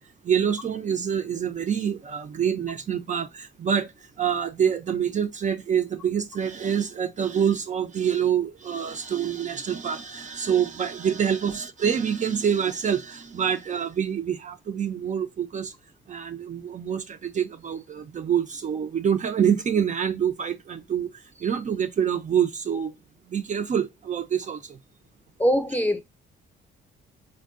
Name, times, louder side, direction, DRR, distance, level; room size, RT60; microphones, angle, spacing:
voice 1, 0.2-15.7 16.1-21.1 21.4-22.9 23.3-24.8, right 8 dB, 40° right, 0.4 m, -26 dB
voice 2, 25.4-26.0, equal, 10° left, 0.6 m, -22 dB
3.5 x 2.2 x 2.4 m
cardioid pair, 90°, 20 cm